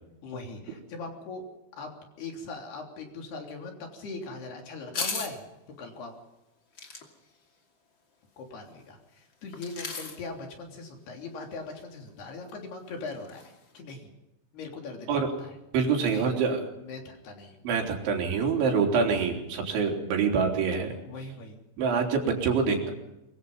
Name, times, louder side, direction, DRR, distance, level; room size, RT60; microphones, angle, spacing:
voice 1, 0.2-1.5 1.7-5.5 5.8-6.2 8.4-14.1 14.5-15.6 16.0-16.4 16.8-17.6 21.0-21.6, left 3 dB, 60° left, 3 dB, 5.2 m, -40 dB
sound 1, 4.9-5.3 6.8-7.1 9.5-10.2 11.8-11.9 12.1-12.2 12.5-12.6 13.1-13.5 13.8-13.9, left 4 dB, 30° left, 2.5 m, -35 dB
voice 2, 15.7-16.7 17.7-21.0 21.8-22.9, right 5 dB, 75° right, 2 dB, 5.8 m, -25 dB
23.5 x 23.0 x 5.5 m, 0.91 s
omnidirectional pair, 5.5 m